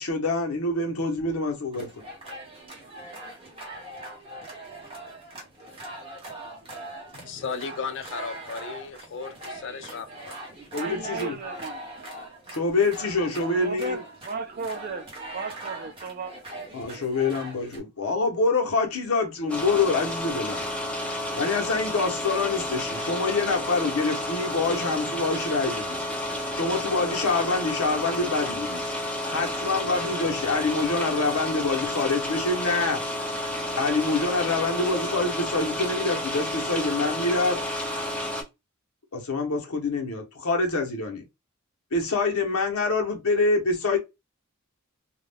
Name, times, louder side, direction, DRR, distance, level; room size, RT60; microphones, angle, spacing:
voice 1, 0.0-2.0 10.7-11.3 12.5-14.0 16.7-20.6 21.3-26.0 26.5-28.8 29.3-33.0 33.8-37.6 39.1-41.2 41.9-44.0, left 3 dB, 80° left, 0.8 m, -26 dB
sound 1, 1.7-17.8, right 1 dB, 25° right, 0.9 m, -41 dB
voice 2, 7.1-10.4, left 5 dB, 55° left, 0.3 m, -35 dB
voice 3, 10.6-11.8 13.6-15.1 15.3-16.3, right 4 dB, 40° right, 0.5 m, -35 dB
sound 2, 19.5-38.4, left 1 dB, 5° left, 0.6 m, -31 dB
2.3 x 2.1 x 3.3 m
head